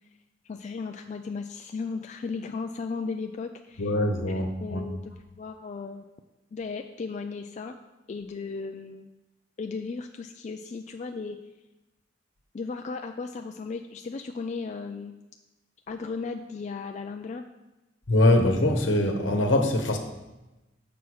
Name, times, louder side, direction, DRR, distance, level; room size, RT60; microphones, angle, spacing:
voice 1, 0.5-3.9 4.6-6.0 6.5-7.8 8.1-9.1 9.6-11.4 12.5-15.1 15.9-17.4, left 4 dB, 35° left, 5 dB, 0.3 m, -35 dB
voice 2, 3.8-4.8 18.1-20.0, left 1 dB, 75° left, 4 dB, 1.0 m, -23 dB
6.9 x 6.1 x 4.7 m, 1.0 s
head